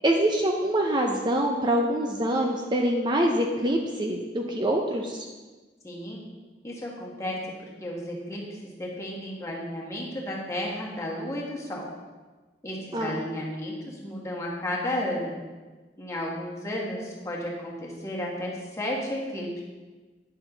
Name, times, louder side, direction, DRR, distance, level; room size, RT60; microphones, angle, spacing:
voice 1, 0.0-5.3 12.9-13.2, right 1 dB, 25° right, 1 dB, 0.6 m, -25 dB
voice 2, 5.8-6.2 6.6-7.4 7.8-11.9 12.6-15.4 16.0-19.6, left 1 dB, 20° left, -4 dB, 1.7 m, -33 dB
9.6 x 6.8 x 3.9 m, 1.3 s
head